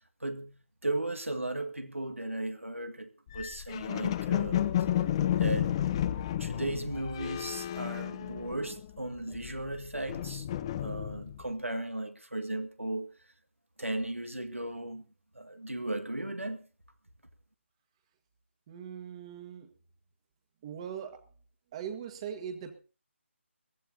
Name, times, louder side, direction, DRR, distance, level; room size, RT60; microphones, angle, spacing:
voice 1, 0.2-0.5 0.8-4.6 5.4-5.8 6.4-10.5 10.8-13.1 13.8-15.1 15.4-16.7, right 1 dB, 90° right, 1.9 m, -36 dB
sound 1, 3.3-8.9 9.2-11.5, left 11 dB, 25° left, 0.7 m, -32 dB
voice 2, 18.7-19.7 20.6-21.2 21.7-22.8, right 8 dB, 25° right, 1.7 m, -40 dB
22.5 x 15.0 x 2.8 m
figure-of-eight pair, 150°, 7 cm